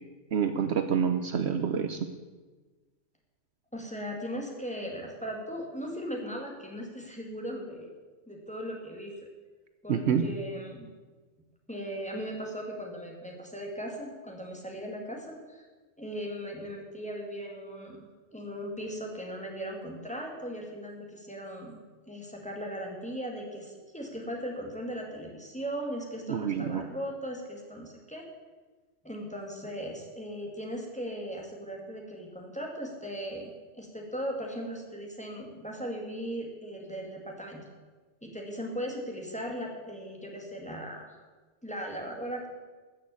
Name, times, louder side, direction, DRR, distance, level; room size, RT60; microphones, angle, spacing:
voice 1, 0.3-2.0 9.9-10.2 26.3-26.9, right 7 dB, 65° right, 8 dB, 0.9 m, -27 dB
voice 2, 3.7-7.9 8.3-9.2 9.8-10.9 11.7-15.7 16.0-21.8 22.1-28.3 29.0-37.7 38.2-41.1 41.6-42.5, equal, 5° left, 0 dB, 2.3 m, -38 dB
14.0 x 6.4 x 8.5 m, 1.3 s
omnidirectional pair, 1.3 m